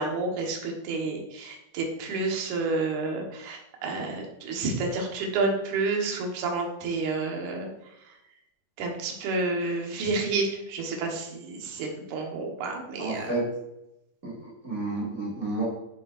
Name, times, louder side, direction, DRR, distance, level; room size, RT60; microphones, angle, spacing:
voice 1, 0.0-7.7 8.1-8.2 8.8-13.3, right 3 dB, 65° right, 1 dB, 2.4 m, -30 dB
voice 2, 13.0-13.5 14.2-15.6, right 2 dB, 30° right, -5 dB, 1.8 m, -31 dB
9.3 x 6.7 x 2.5 m, 0.88 s
omnidirectional pair, 4.2 m